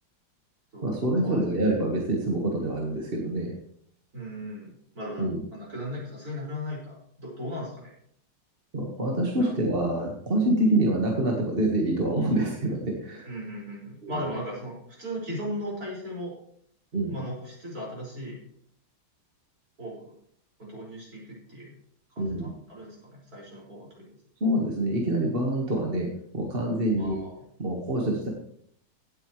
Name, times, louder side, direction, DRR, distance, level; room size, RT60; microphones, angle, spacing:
voice 1, 0.8-3.5 5.2-5.4 8.7-13.3 14.0-14.1 16.9-17.1 22.2-22.5 24.4-26.1 26.3-27.2 27.6-28.3, right 1 dB, 30° right, -1 dB, 1.7 m, -26 dB
voice 2, 4.1-7.9 9.4-9.5 13.3-16.4 17.1-18.4 19.8-20.1 20.6-21.7 22.1-24.2 26.9-27.3, equal, 45° right, -6 dB, 6.1 m, -37 dB
17.0 x 8.9 x 3.2 m, 0.67 s
omnidirectional pair, 2.1 m